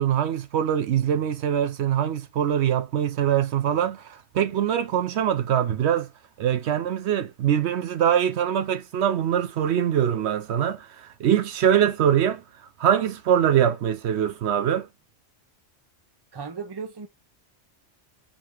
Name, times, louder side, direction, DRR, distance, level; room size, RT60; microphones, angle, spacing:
voice 1, 0.0-6.1 6.4-12.4 12.8-14.9, right 9 dB, 70° right, 0.9 m, -23 dB
voice 2, 16.3-17.1, right 5 dB, 25° right, 0.7 m, -35 dB
3.8 x 2.8 x 4.8 m
omnidirectional pair, 1.2 m